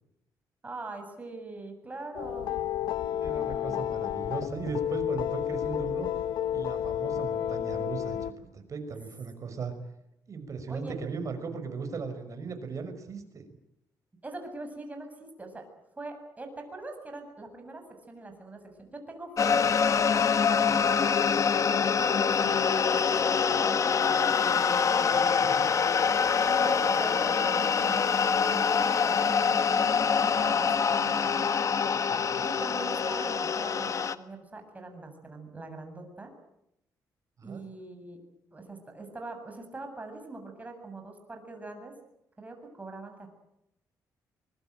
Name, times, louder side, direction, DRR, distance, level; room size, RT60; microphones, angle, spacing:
voice 1, 0.6-2.6 3.2-3.9 10.7-10.9 14.2-15.7 16.0-19.7 20.5-24.2 24.4-24.6 25.0-25.6 26.4-31.5 32.4-36.3 37.4-38.2 38.5-41.9 42.4-43.3, right 3 dB, 20° right, 5 dB, 7.8 m, -42 dB
sound 1, 2.1-8.3, left 10 dB, 85° left, 1.1 m, -31 dB
voice 2, 3.2-6.1 6.5-9.7 10.3-13.5 20.7-20.8 25.1-25.7 32.1-32.2 37.4-37.6, right 4 dB, 45° right, 8 dB, 5.8 m, -38 dB
sound 2, 19.4-34.1, left 6 dB, 45° left, 1.4 m, -25 dB
24.5 x 22.0 x 9.1 m, 0.83 s
cardioid pair, 100°, 7 cm